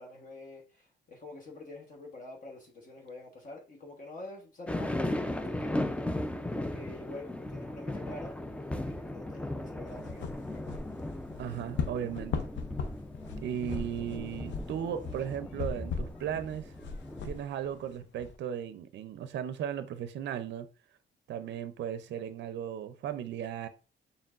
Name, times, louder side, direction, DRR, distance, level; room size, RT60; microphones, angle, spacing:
voice 1, 0.0-5.9 6.6-10.7, left 2 dB, 40° left, 1.1 m, -47 dB
sound 1, 4.7-17.4, left 1 dB, 5° left, 0.4 m, -37 dB
sound 2, 9.9-18.4, left 5 dB, 65° left, 0.6 m, -39 dB
voice 2, 11.4-12.5 13.4-16.7 17.2-20.7 21.3-23.7, right 9 dB, 65° right, 0.5 m, -36 dB
4.5 x 3.3 x 2.4 m
cardioid pair, 90°, 20 cm